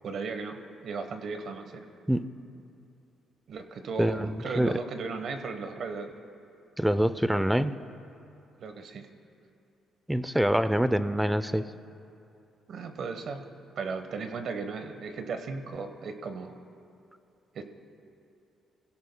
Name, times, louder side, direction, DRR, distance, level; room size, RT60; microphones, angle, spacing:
voice 1, 0.0-1.8 3.5-6.1 8.6-9.1 12.7-13.5 13.8-16.6 17.5-17.6, right 4 dB, 65° right, 7 dB, 1.1 m, -36 dB
voice 2, 4.0-4.8 6.8-7.7 10.1-11.7, equal, 5° right, 13 dB, 0.5 m, -25 dB
26.5 x 16.5 x 2.2 m, 2.7 s
cardioid pair, 90°, 0 cm